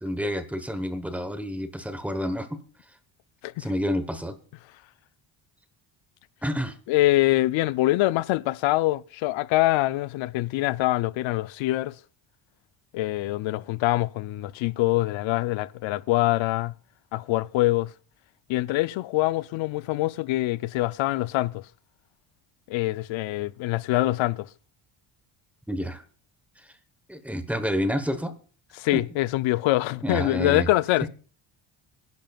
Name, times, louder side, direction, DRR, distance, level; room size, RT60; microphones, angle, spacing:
voice 1, 0.0-2.6 3.6-4.4 6.4-6.8 25.7-26.0 26.6-26.7 27.1-28.3 28.9-29.0 30.0-30.7, equal, 5° right, 1.1 m, -29 dB
voice 2, 6.9-12.0 12.9-16.7 17.1-17.9 18.5-21.7 22.7-24.5 28.8-31.1, left 17 dB, 85° left, 0.6 m, -24 dB
25.5 x 10.5 x 2.4 m
cardioid pair, 125°, 45 cm